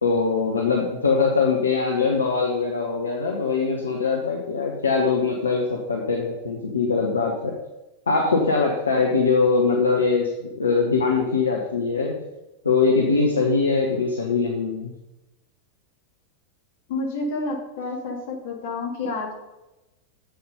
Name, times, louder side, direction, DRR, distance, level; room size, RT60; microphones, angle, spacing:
voice 1, 0.0-7.5 8.1-12.2 12.6-14.9, left 4 dB, 75° left, 0 dB, 1.1 m, -22 dB
voice 2, 16.9-19.3, left 3 dB, 55° left, 0 dB, 2.3 m, -29 dB
7.9 x 7.0 x 5.4 m, 0.99 s
figure-of-eight pair, 90°, 0 cm